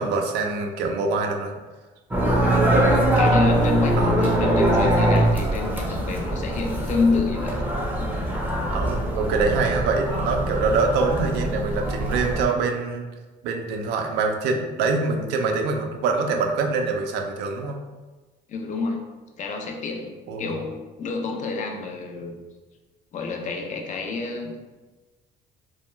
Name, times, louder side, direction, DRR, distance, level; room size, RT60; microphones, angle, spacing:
voice 1, 0.0-1.5 4.0-4.2 8.7-13.0 13.4-17.8 20.3-20.5, right 4 dB, 85° right, 3 dB, 0.4 m, -24 dB
sound 1, 2.1-12.4, right 1 dB, 10° right, 0.5 m, -22 dB
voice 2, 2.4-2.9 3.2-7.6 18.5-19.0 19.4-22.4 23.1-24.6, left 4 dB, 45° left, 3 dB, 0.4 m, -28 dB
2.2 x 2.1 x 3.0 m, 1.2 s
cardioid pair, 110°, 17 cm